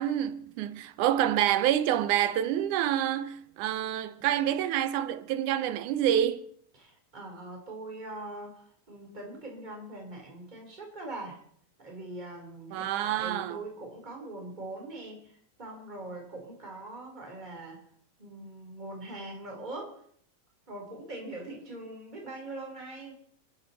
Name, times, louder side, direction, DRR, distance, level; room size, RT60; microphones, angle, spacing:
voice 1, 0.0-6.5 12.7-13.6, right 11 dB, 85° right, 2.3 m, -27 dB
voice 2, 6.8-11.4 11.8-17.8 18.2-20.0 20.7-23.1, right 2 dB, 15° right, 3.6 m, -42 dB
29.0 x 10.5 x 4.2 m
omnidirectional pair, 3.5 m